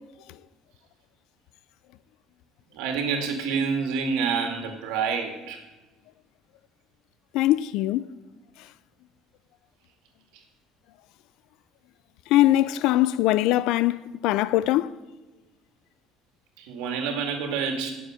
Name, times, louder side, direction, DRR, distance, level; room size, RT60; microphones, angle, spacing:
voice 1, 2.8-5.6 16.7-17.9, right 5 dB, 85° right, 2.3 m, -27 dB
voice 2, 7.3-8.1 12.3-14.0 14.2-14.9, left 15 dB, 75° left, 0.5 m, -21 dB
19.0 x 7.1 x 5.1 m
cardioid pair, 105°, 0 cm